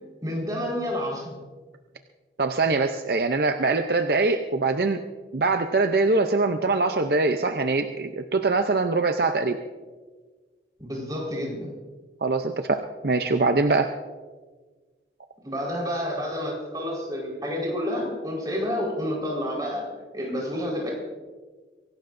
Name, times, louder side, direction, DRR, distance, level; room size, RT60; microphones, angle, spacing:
voice 1, 0.2-1.4 10.8-11.7 15.4-19.9 20.1-20.9, equal, 20° right, -3 dB, 4.5 m, -29 dB
voice 2, 2.4-5.0 5.3-9.6 12.2-13.9, right 3 dB, 60° right, 6 dB, 0.6 m, -23 dB
23.5 x 17.0 x 2.6 m, 1.4 s
head